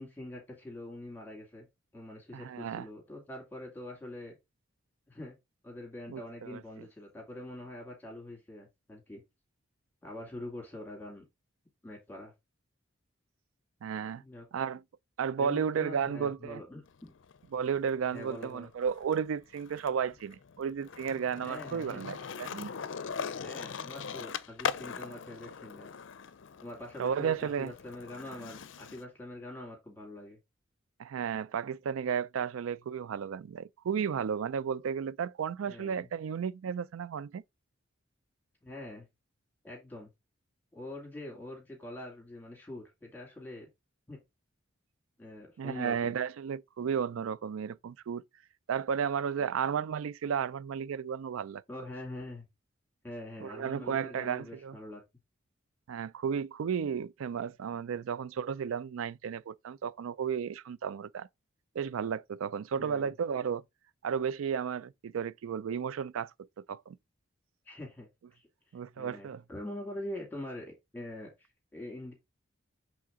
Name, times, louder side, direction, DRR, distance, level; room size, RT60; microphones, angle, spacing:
voice 1, 0.0-1.7 1.9-4.4 5.1-5.4 5.6-9.2 10.0-11.2 11.8-12.3 14.2-14.5 15.4-17.1 18.1-18.7 21.4-22.1 23.4-25.9 26.6-30.4 35.7-36.1 38.6-39.1 39.6-40.1 40.7-43.7 44.1-44.2 45.2-46.2 49.3-49.5 51.7-52.5 53.0-55.0 62.7-63.1 67.7-68.1 68.3-68.4 69.0-72.1, left 1 dB, 10° left, 2.2 m, -44 dB
voice 2, 2.3-2.9 6.1-6.6 13.8-14.2 14.5-14.8 15.2-16.6 17.5-22.7 27.0-27.7 31.0-37.4 45.6-48.2 48.7-51.6 53.4-54.8 55.9-61.3 61.8-63.6 64.0-66.3 66.7-67.0 68.7-69.4, right 7 dB, 90° right, 0.4 m, -33 dB
Skateboard, 16.9-18.5 18.8-29.0, left 6 dB, 65° left, 0.5 m, -41 dB
7.5 x 3.7 x 3.6 m
head